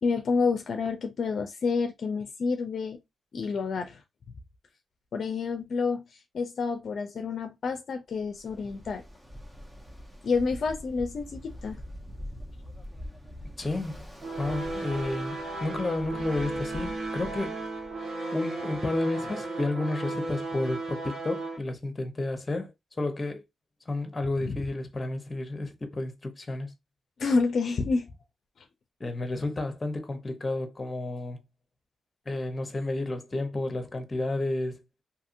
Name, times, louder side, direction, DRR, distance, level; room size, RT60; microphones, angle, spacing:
voice 1, 0.0-3.0 3.3-4.0 5.1-6.0 6.3-9.0 10.2-11.8 24.4-24.6 27.2-28.1, left 4 dB, 65° left, 0.4 m, -28 dB
Ocean, 8.2-18.1, equal, 15° right, 0.9 m, -44 dB
voice 2, 13.6-14.1 14.4-17.6 18.3-22.7 23.0-23.4 23.9-26.7 29.0-31.4 32.3-34.8, left 2 dB, 35° left, 0.8 m, -31 dB
sound 1, 14.2-21.6, right 2 dB, 65° right, 1.4 m, -35 dB
2.8 x 2.6 x 2.5 m
supercardioid pair, 55°, 0 cm